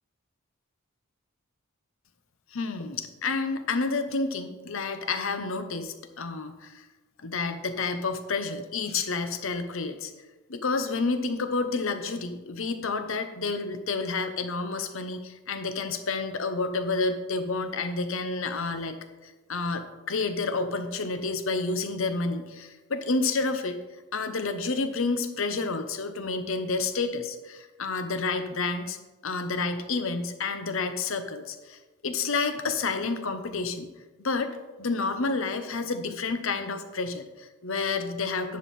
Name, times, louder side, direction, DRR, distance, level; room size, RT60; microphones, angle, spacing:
voice 1, 2.5-6.8 7.2-10.1 10.5-19.0 19.2-23.8 24.1-29.0 29.2-33.9 34.2-38.6, left 3 dB, 65° left, 9 dB, 0.9 m, -30 dB
10.5 x 7.3 x 4.3 m, 1.2 s
head